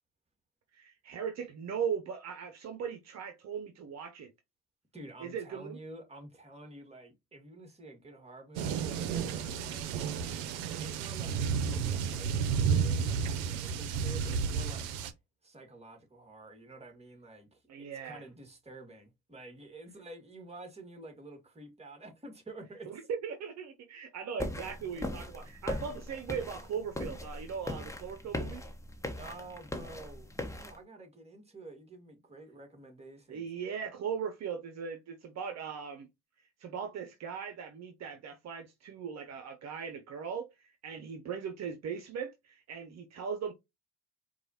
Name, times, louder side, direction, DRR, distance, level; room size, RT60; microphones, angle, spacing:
voice 1, 0.7-4.3 5.2-5.8 17.7-18.3 22.9-28.6 33.3-36.1 36.6-43.5, right 7 dB, 55° right, 0.8 m, -39 dB
voice 2, 4.9-10.2 10.8-14.9 15.4-22.9 29.1-33.5, right 2 dB, 20° right, 1.8 m, -49 dB
sound 1, 8.5-15.1, right 6 dB, 85° right, 0.6 m, -32 dB
sound 2, 24.4-30.8, left 1 dB, 10° left, 1.1 m, -39 dB
4.6 x 2.4 x 2.8 m
hypercardioid pair, 60°, 33 cm